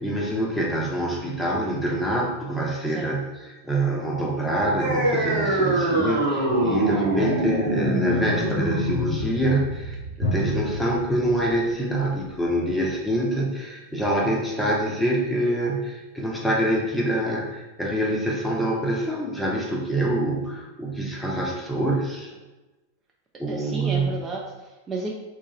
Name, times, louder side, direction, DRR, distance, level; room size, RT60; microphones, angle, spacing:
voice 1, 0.0-22.3 23.4-24.1, right 1 dB, 5° left, -3 dB, 0.7 m, -25 dB
sound 1, 4.8-11.8, right 1 dB, 70° right, 1.2 m, -25 dB
Drum, 10.2-13.7, equal, 55° left, 0.8 m, -32 dB
voice 2, 23.5-25.2, right 3 dB, 20° right, -1 dB, 0.4 m, -32 dB
3.0 x 2.4 x 4.1 m, 1.1 s
figure-of-eight pair, 90°, 0 cm